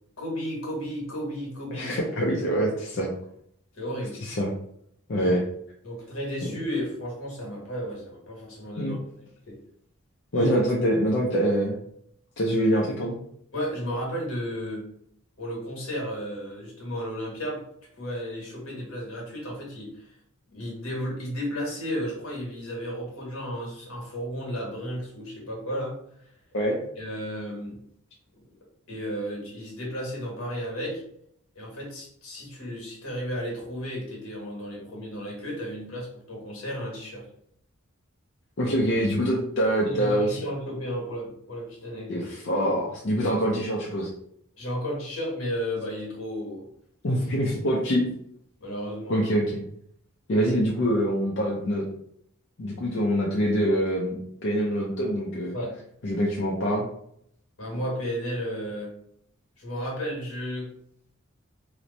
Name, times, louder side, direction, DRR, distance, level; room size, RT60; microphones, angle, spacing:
voice 1, 0.2-2.0 3.7-4.2 5.2-5.4 5.8-9.0 9.5-9.6 10.3-10.5 12.5-12.6 13.5-14.8 15.4-17.6 18.0-20.1 20.5-26.0 27.0-27.8 28.4-28.5 28.9-31.0 31.5-37.3 38.6-38.8 39.8-42.3 43.1-43.3 44.6-46.6 47.1-47.2 48.6-49.2 55.5-55.8 57.6-58.9 59.6-60.7, equal, 80° left, -1 dB, 1.4 m, -33 dB
voice 2, 1.7-3.1 4.2-4.5 5.1-5.4 8.8-9.0 10.3-11.8 12.4-13.2 26.5-26.8 38.6-40.4 42.1-44.1 47.0-48.1 49.1-49.6 50.3-51.9 52.6-55.5 56.0-56.9, equal, 55° left, -3 dB, 0.5 m, -25 dB
3.1 x 2.1 x 3.8 m, 0.70 s
head